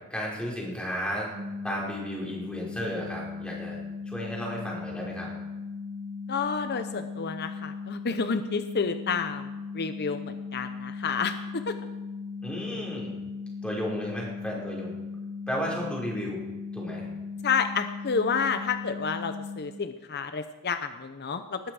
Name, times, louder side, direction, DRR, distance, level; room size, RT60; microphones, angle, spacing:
voice 1, 0.1-1.3 1.6-5.3 12.4-13.1 13.6-15.0 15.5-16.4 16.7-17.1, equal, 5° left, -4 dB, 5.3 m, -33 dB
sound 1, 1.3-19.6, left 4 dB, 90° right, 3.8 m, -38 dB
voice 2, 6.3-9.5 9.7-11.8 17.4-21.6, left 5 dB, 50° left, 9 dB, 0.8 m, -30 dB
20.0 x 14.0 x 4.9 m, 1.1 s
head